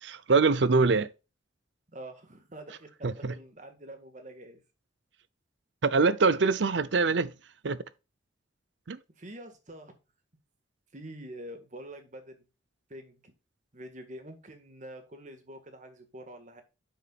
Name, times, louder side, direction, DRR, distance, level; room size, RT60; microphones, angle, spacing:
voice 1, 0.0-1.1 3.0-3.3 5.8-7.3 7.6-7.8 8.9-9.0, right 4 dB, 70° right, 0.6 m, -24 dB
voice 2, 1.9-4.6 9.2-9.9 10.9-12.5 12.9-13.3 13.7-16.6, right 1 dB, 40° right, 1.8 m, -46 dB
9.4 x 7.0 x 2.4 m
head